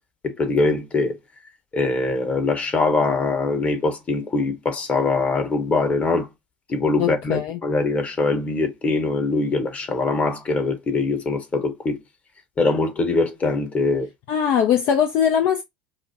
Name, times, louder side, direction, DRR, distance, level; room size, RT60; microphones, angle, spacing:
voice 1, 0.2-1.2 1.7-6.3 6.7-12.0 12.6-14.1, left 3 dB, 30° left, 1.0 m, -22 dB
voice 2, 7.0-7.6 14.3-15.6, left 8 dB, 50° left, 0.4 m, -20 dB
4.9 x 2.2 x 2.7 m
figure-of-eight pair, 70°, 5 cm